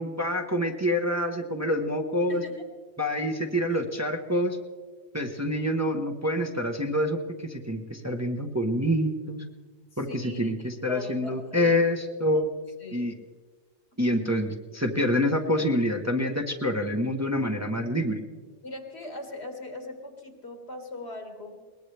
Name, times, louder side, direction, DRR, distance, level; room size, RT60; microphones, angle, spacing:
voice 1, 0.0-2.4 3.0-4.6 5.1-9.4 10.0-12.5 12.9-13.1 14.0-18.2, equal, 15° right, 3 dB, 1.0 m, -27 dB
voice 2, 2.3-2.6 9.9-10.5 10.9-11.8 12.8-13.1 18.6-21.6, left 2 dB, 65° left, 4 dB, 2.2 m, -40 dB
21.5 x 20.0 x 3.4 m, 1.4 s
omnidirectional pair, 1.2 m